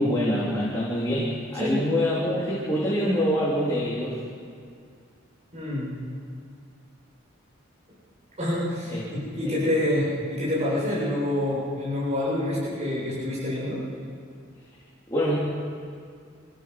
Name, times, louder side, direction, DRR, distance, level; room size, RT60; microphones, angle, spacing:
voice 1, 0.0-4.2 8.9-9.1 9.4-9.5 15.1-15.4, equal, 15° left, -8 dB, 3.8 m, -25 dB
voice 2, 5.5-5.9 8.4-13.8, left 1 dB, 30° right, -7 dB, 7.4 m, -27 dB
26.5 x 16.0 x 6.2 m, 2.3 s
head